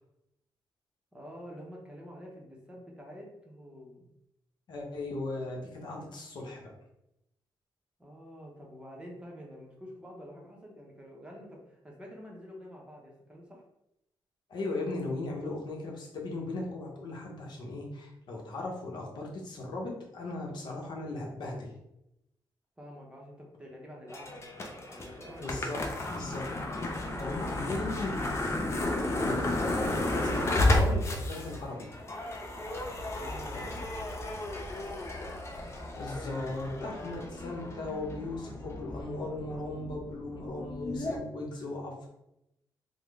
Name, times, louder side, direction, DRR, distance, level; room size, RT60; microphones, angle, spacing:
voice 1, 1.1-4.1 8.0-13.6 22.8-26.0 27.0-27.9 33.1-33.9, equal, 10° right, -1 dB, 0.7 m, -48 dB
voice 2, 4.7-6.7 14.5-21.7 25.4-25.8 26.1-26.4 27.2-28.1 29.1-31.9 35.9-42.1, left 2 dB, 60° left, -1 dB, 0.9 m, -37 dB
sound 1, 24.1-41.2, left 1 dB, 30° left, 0.5 m, -33 dB
3.5 x 2.1 x 3.4 m, 0.84 s
wide cardioid pair, 140°, 8 cm